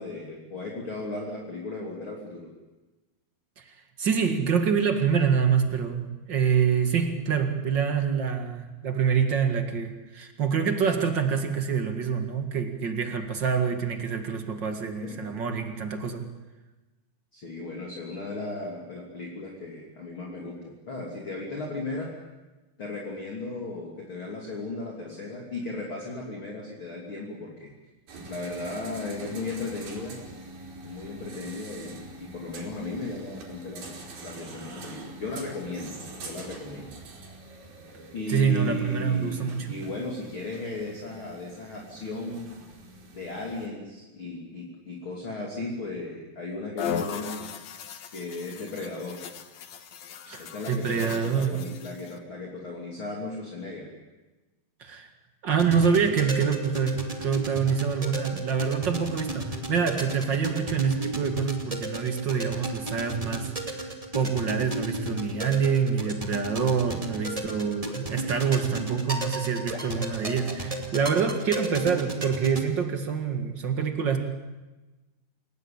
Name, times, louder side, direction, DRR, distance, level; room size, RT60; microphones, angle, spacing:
voice 1, 0.0-2.5 15.0-15.3 17.3-20.6 20.9-22.1 22.8-27.7 28.3-30.2 30.8-34.0 34.2-35.9 36.2-36.9 38.1-42.5 43.1-47.4 48.1-49.2 50.4-53.9, left 2 dB, 35° left, -1 dB, 3.5 m, -36 dB
voice 2, 4.0-16.3 38.3-39.7 50.3-51.6 54.8-55.1 55.4-63.9 64.1-74.2, right 6 dB, 40° right, 6 dB, 1.8 m, -26 dB
sound 1, 28.1-43.7, right 2 dB, 70° right, 6.0 m, -44 dB
sound 2, 46.8-52.2, left 7 dB, 55° left, 2.2 m, -37 dB
sound 3, 55.5-72.6, right 2 dB, 15° right, 1.5 m, -34 dB
28.5 x 17.5 x 8.7 m, 1.1 s
omnidirectional pair, 4.6 m